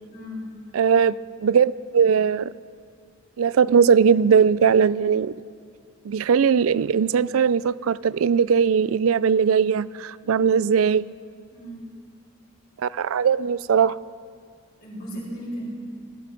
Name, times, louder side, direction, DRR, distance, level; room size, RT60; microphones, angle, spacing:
voice 1, 0.1-0.4 10.2-10.5 11.5-11.8 14.8-15.7, equal, 50° left, -4 dB, 5.2 m, -35 dB
voice 2, 0.7-2.5 3.4-5.3 6.0-11.1 12.8-14.0, right 6 dB, 80° right, 19 dB, 0.4 m, -19 dB
19.5 x 13.5 x 5.3 m, 2.1 s
head